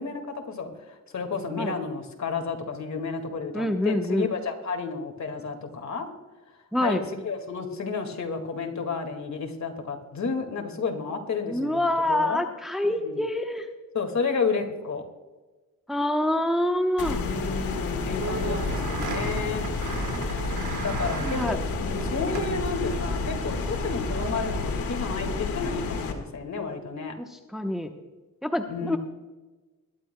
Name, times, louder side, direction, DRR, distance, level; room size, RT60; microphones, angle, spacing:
voice 1, 0.0-6.1 6.8-12.4 13.0-13.2 13.9-15.1 17.1-19.7 20.8-27.2 28.7-29.0, left 4 dB, 55° left, 4 dB, 2.0 m, -31 dB
voice 2, 3.5-4.3 6.7-7.0 11.5-13.7 15.9-17.2 21.2-21.6 27.2-27.9 28.4-29.0, left 1 dB, ahead, 5 dB, 0.9 m, -26 dB
sound 1, 17.0-26.1, left 4 dB, 90° left, 1.6 m, -31 dB
sound 2, 18.2-24.7, right 4 dB, 60° right, 1.5 m, -34 dB
21.5 x 11.0 x 2.2 m, 1.2 s
cardioid pair, 70°, 34 cm